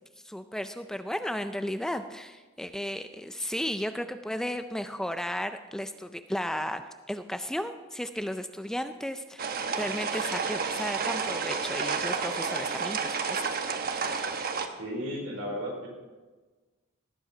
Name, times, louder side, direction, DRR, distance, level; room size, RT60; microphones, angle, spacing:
voice 1, 0.2-6.8 7.1-9.5 9.8-13.4, equal, 5° left, 9 dB, 0.4 m, -34 dB
sound 1, 9.4-14.7, right 5 dB, 45° right, 1.0 m, -31 dB
voice 2, 14.8-15.9, equal, 75° right, -1 dB, 4.4 m, -34 dB
18.0 x 7.9 x 4.9 m, 1.3 s
head